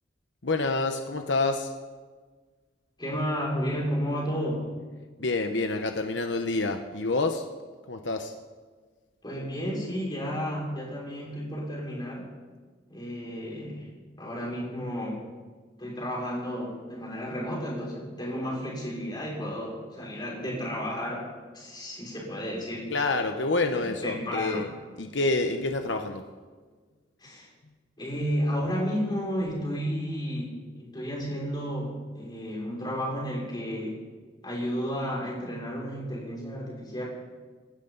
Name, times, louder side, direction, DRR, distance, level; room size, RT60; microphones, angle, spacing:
voice 1, 0.4-1.7 5.2-7.4 7.9-8.3 22.9-24.7 25.0-26.2, left 3 dB, 80° left, 5 dB, 1.1 m, -27 dB
voice 2, 3.0-4.7 9.2-12.3 12.9-13.9 14.2-15.2 15.8-22.9 23.8-24.6 27.2-27.5 28.0-34.0 34.4-37.0, equal, 25° left, -4 dB, 6.1 m, -32 dB
27.5 x 12.5 x 4.1 m, 1.4 s
head